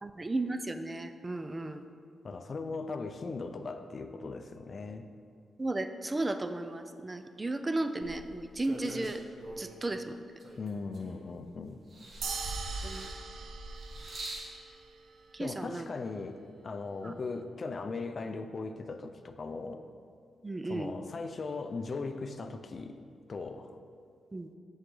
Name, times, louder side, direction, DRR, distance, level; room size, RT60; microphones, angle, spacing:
voice 1, 0.0-1.9 5.6-9.2 9.6-10.2 12.8-13.1 15.3-15.9 17.0-17.1 20.4-20.9 24.3-24.5, right 2 dB, 25° right, 9 dB, 0.4 m, -34 dB
voice 2, 2.2-5.0 10.6-11.8 15.4-19.8 20.6-23.0 23.3-23.7, left 3 dB, 45° left, 8 dB, 0.5 m, -38 dB
sound 1, 8.0-9.8 10.4-11.5 11.9-14.5 15.4-15.5, right 2 dB, 55° right, 1.3 m, -42 dB
sound 2, 12.2-15.0, right 5 dB, 80° right, 0.5 m, -41 dB
6.7 x 6.3 x 3.8 m, 2.3 s
cardioid pair, 75°, 0 cm